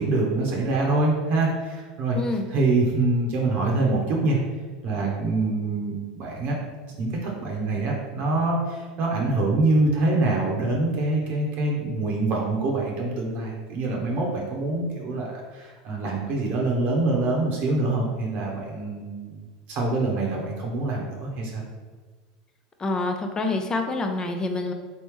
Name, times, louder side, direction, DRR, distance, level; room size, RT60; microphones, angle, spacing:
voice 1, 0.0-2.2 2.5-4.4 4.8-6.6 7.0-21.6, right 2 dB, 50° right, -1 dB, 0.9 m, -25 dB
voice 2, 2.1-2.5 22.8-24.7, left 2 dB, 20° left, 5 dB, 0.5 m, -27 dB
4.0 x 3.1 x 3.6 m, 1.4 s
supercardioid pair, 120°, 3 cm